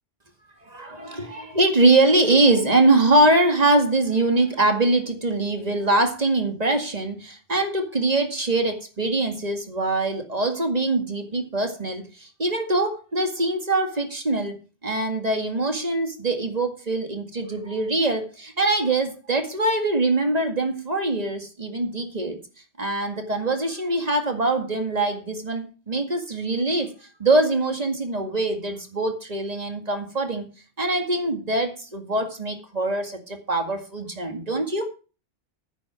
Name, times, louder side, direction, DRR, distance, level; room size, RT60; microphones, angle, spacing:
voice 1, 0.6-22.4 22.8-26.9 27.2-30.4 30.8-34.9, right 2 dB, 35° right, 5 dB, 2.1 m, -23 dB
9.8 x 8.0 x 6.2 m, 0.35 s
omnidirectional pair, 1.1 m